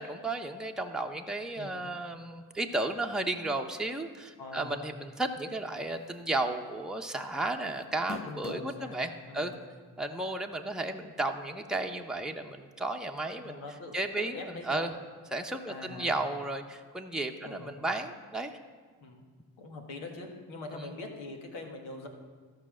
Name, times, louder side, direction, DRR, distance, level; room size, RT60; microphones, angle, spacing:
voice 1, 0.0-9.5 10.0-13.6 13.9-14.9 15.3-18.6, right 2 dB, ahead, 3 dB, 0.9 m, -34 dB
voice 2, 4.4-4.7 8.2-9.6 13.4-14.9 15.6-16.1 17.4-17.7 19.0-19.2 19.6-22.1, left 2 dB, 80° left, 1 dB, 1.7 m, -43 dB
sound 1, 6.1-6.4 6.7-6.8 7.8-8.7 9.5-9.6 11.2-11.3, left 6 dB, 30° left, 0.5 m, -41 dB
13.5 x 5.6 x 6.2 m, 1.5 s
hypercardioid pair, 50°, 45 cm